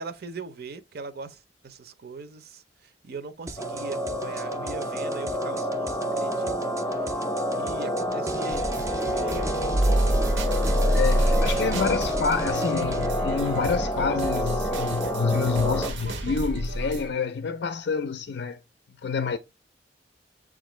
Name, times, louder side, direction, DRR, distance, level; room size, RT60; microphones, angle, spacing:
voice 1, 0.0-7.2 7.5-8.8 9.1-10.4, right 3 dB, 60° right, 0.6 m, -41 dB
sound 1, 3.5-13.1, right 2 dB, 15° right, 0.4 m, -39 dB
sound 2, 3.6-15.9, equal, 15° left, 0.7 m, -29 dB
sound 3, 8.5-17.1, equal, 85° right, 0.9 m, -27 dB
voice 2, 10.9-18.6 19.0-19.4, left 5 dB, 65° left, 0.4 m, -28 dB
7.2 x 2.4 x 3.0 m
head